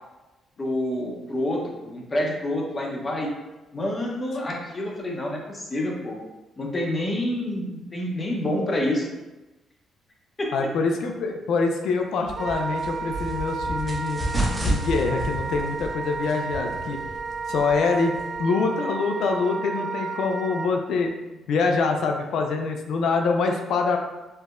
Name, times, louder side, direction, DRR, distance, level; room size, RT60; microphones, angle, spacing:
voice 1, 0.6-3.3 3.7-6.2 6.6-9.1 10.4-10.5 14.2-14.3, left 1 dB, 30° left, -1 dB, 0.7 m, -28 dB
voice 2, 10.5-14.2 14.6-17.0 17.5-21.1 21.5-24.0, left 4 dB, 75° left, 3 dB, 0.4 m, -25 dB
sound 1, 12.2-18.4, right 1 dB, 10° right, 0.8 m, -31 dB
Wind instrument woodwind instrument, 12.3-20.7, right 4 dB, 35° right, 0.3 m, -32 dB
4.4 x 2.1 x 2.4 m, 1.1 s
cardioid pair, 90°, 0 cm